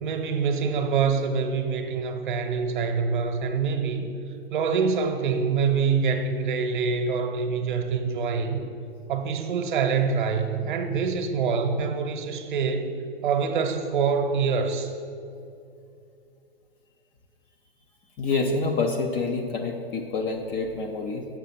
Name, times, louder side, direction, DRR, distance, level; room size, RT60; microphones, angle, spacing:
voice 1, 0.0-4.1 4.5-8.7 9.1-12.9 13.2-14.9, right 5 dB, 50° right, 6 dB, 0.9 m, -25 dB
voice 2, 18.2-21.3, left 3 dB, 20° left, 2 dB, 0.4 m, -27 dB
7.4 x 5.5 x 5.7 m, 2.6 s
figure-of-eight pair, 115°, 31 cm